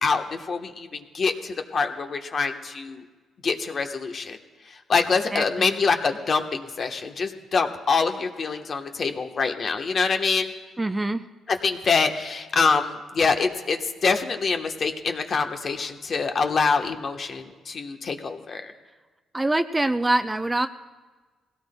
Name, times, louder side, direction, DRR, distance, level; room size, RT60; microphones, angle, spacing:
voice 1, 0.0-3.0 3.4-4.4 4.7-10.5 11.5-18.7, left 4 dB, 45° left, 5 dB, 1.1 m, -25 dB
voice 2, 5.3-5.7 10.8-11.2 19.3-20.7, right 2 dB, 15° right, 9 dB, 0.5 m, -24 dB
21.0 x 17.0 x 2.2 m, 1.4 s
cardioid pair, 90°, 0 cm